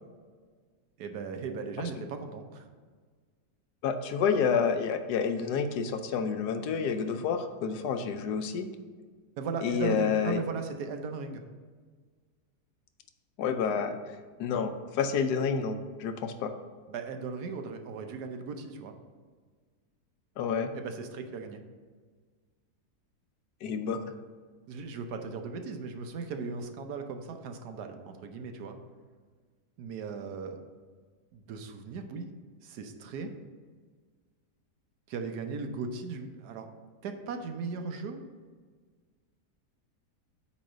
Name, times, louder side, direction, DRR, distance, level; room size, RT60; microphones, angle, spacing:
voice 1, 1.0-2.7 9.4-11.4 16.9-18.9 20.7-21.6 24.7-28.8 29.8-30.6 31.3-32.3 32.6-33.3 35.1-36.7 37.0-38.2, right 4 dB, 75° right, 6 dB, 1.3 m, -37 dB
voice 2, 3.8-8.7 9.6-10.4 13.4-14.0 14.4-16.5 20.4-20.7 23.6-24.1, left 6 dB, 80° left, 8 dB, 1.2 m, -29 dB
8.4 x 3.2 x 6.3 m, 1.5 s
omnidirectional pair, 1.8 m